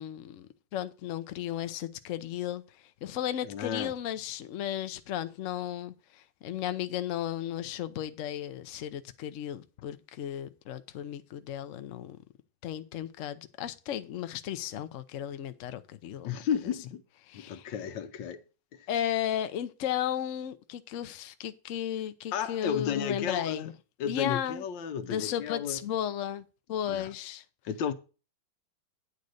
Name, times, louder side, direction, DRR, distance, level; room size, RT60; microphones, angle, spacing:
voice 1, 0.0-2.6 3.0-12.2 12.6-16.3 17.3-17.7 18.9-23.7 24.1-24.6 25.0-26.4 26.7-27.4, left 10 dB, 60° left, 0.8 m, -34 dB
voice 2, 3.4-3.9 16.2-17.0 17.3-18.4 18.7-18.9 22.3-23.7 24.0-25.8 26.9-27.1 27.6-27.9, left 8 dB, 80° left, 1.5 m, -33 dB
9.6 x 4.0 x 6.3 m
omnidirectional pair, 2.0 m